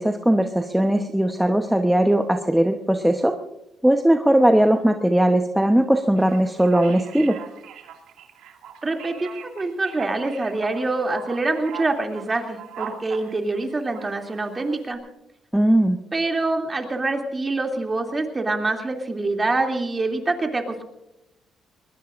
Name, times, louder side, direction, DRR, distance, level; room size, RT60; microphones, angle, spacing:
voice 1, 0.0-3.4 3.8-7.4 15.5-16.0, right 1 dB, 5° right, 5 dB, 1.0 m, -19 dB
Male speech man speaking, 6.2-15.0, right 8 dB, 85° right, 2.4 m, -41 dB
voice 2, 8.8-15.0 16.1-20.8, right 2 dB, 25° right, 3 dB, 2.9 m, -25 dB
22.0 x 21.0 x 2.6 m, 0.89 s
cardioid pair, 90°, 0 cm